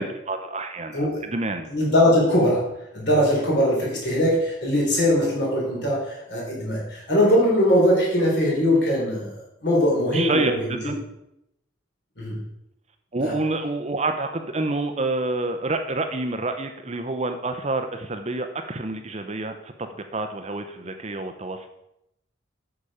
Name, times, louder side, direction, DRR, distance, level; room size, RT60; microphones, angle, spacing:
voice 1, 0.0-1.7 10.1-11.0 13.1-21.7, right 2 dB, 30° right, 7 dB, 0.7 m, -28 dB
voice 2, 0.9-1.2 1.7-2.7 2.9-9.3 9.6-10.9 12.2-12.4 13.2-13.3, equal, 55° left, -4 dB, 4.0 m, -21 dB
8.6 x 6.8 x 5.0 m, 0.83 s
head